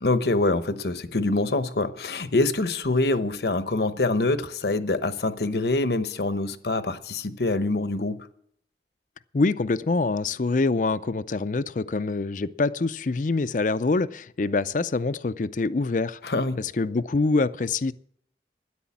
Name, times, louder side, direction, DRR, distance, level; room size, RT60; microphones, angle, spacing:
voice 1, 0.0-8.2 16.3-16.6, left 2 dB, 65° left, 0.9 m, -25 dB
voice 2, 9.3-16.2 16.6-17.9, left 3 dB, 45° left, 0.5 m, -25 dB
13.0 x 10.0 x 7.2 m
head